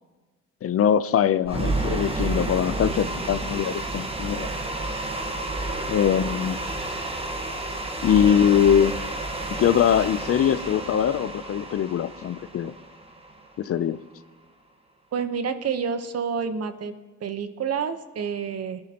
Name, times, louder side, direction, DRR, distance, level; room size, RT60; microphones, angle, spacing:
voice 1, 0.6-4.5 5.9-6.6 8.0-9.0 9.5-12.7 13.6-14.0, left 9 dB, 50° left, 15 dB, 0.5 m, -22 dB
sound 1, 1.5-13.6, right 2 dB, 20° right, 1.4 m, -30 dB
voice 2, 15.1-16.9 17.2-18.8, right 6 dB, 55° right, 10 dB, 1.0 m, -28 dB
20.0 x 10.5 x 2.9 m, 1.3 s
cardioid pair, 90°, 30 cm